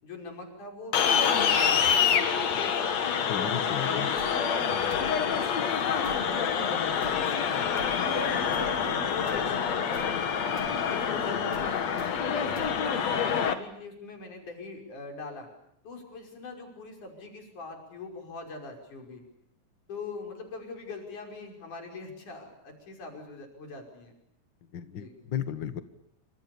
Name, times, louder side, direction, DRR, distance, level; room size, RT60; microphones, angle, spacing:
voice 1, 0.0-1.8 2.1-5.4 5.8-7.6 8.0-10.3 10.8-12.0 12.3-15.5 15.8-19.2 19.9-24.1 25.0-25.1, left 3 dB, 90° left, 2 dB, 7.3 m, -41 dB
sound 1, 0.9-13.5, left 7 dB, 65° left, 3.0 m, -27 dB
voice 2, 3.3-4.1 24.7-25.8, left 9 dB, 45° left, 10 dB, 1.8 m, -34 dB
sound 2, 4.2-4.3 4.9-5.1 6.0-6.3 7.0-7.2 7.8-7.9 8.5-8.7 9.3-9.5 9.9-10.1 10.6-10.7 11.5-11.7 12.0-12.1 12.6-12.7, right 3 dB, 75° right, 5.5 m, -45 dB
28.5 x 26.5 x 7.0 m, 0.74 s
omnidirectional pair, 3.4 m